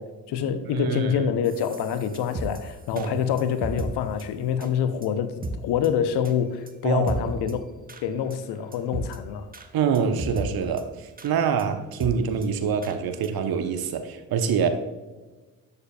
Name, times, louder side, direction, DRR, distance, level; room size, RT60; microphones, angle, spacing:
voice 1, 0.0-7.6 8.0-9.5, left 8 dB, 60° left, 11 dB, 0.8 m, -26 dB
voice 2, 0.7-1.2 2.9-3.2 6.8-7.2 9.7-14.7, right 6 dB, 50° right, 8 dB, 1.0 m, -25 dB
sound 1, 1.4-3.9 4.2-4.3 4.6-4.7 5.0-5.1 5.4-5.5 5.8-5.9 6.2-6.3 6.7-6.8 7.1-7.5 7.9-8.0 8.3-8.4 8.7-9.2 9.5-9.7 9.9-10.5 10.8-10.9 11.2-11.3 11.6-11.7 12.0-12.1 12.4-12.5 12.8-13.0 13.2-13.3 13.7-13.8, right 2 dB, 20° right, 1.0 m, -34 dB
13.0 x 6.9 x 2.3 m, 1.2 s
figure-of-eight pair, 40°, 45 cm